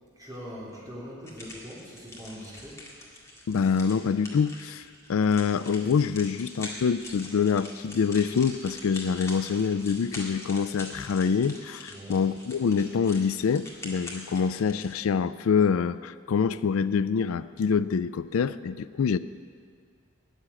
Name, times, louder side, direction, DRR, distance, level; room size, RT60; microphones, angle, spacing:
voice 1, 0.1-2.9 11.9-12.2, equal, 15° right, -6 dB, 3.4 m, -42 dB
sound 1, 1.3-14.9, left 1 dB, 15° left, 1.9 m, -44 dB
voice 2, 3.5-4.8 5.1-19.2, left 6 dB, 80° left, 15 dB, 0.4 m, -25 dB
13.0 x 7.6 x 9.8 m, 2.2 s
head